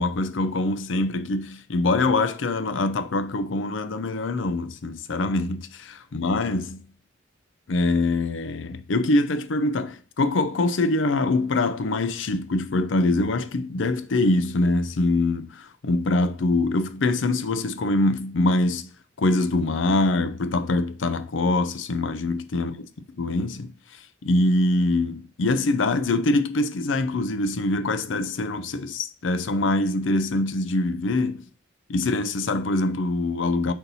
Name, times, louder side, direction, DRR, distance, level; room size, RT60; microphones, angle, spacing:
voice 1, 0.0-6.8 7.7-18.9 19.2-22.8 23.1-31.5 31.9-33.7, left 2 dB, 80° left, 0.6 m, -24 dB
4.4 x 4.1 x 5.3 m
head